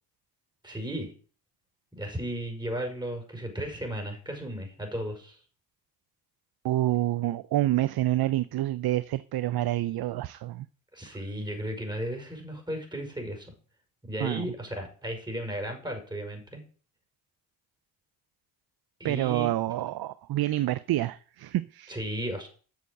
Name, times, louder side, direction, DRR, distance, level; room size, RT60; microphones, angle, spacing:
voice 1, 0.6-1.1 1.9-5.4 10.9-13.5 14.0-16.6 19.0-19.5 21.9-22.5, right 1 dB, 10° right, 5.5 m, -35 dB
voice 2, 6.6-10.7 14.2-14.5 19.0-22.0, right 15 dB, 65° right, 0.6 m, -28 dB
8.3 x 6.5 x 7.7 m
supercardioid pair, 45°, 41 cm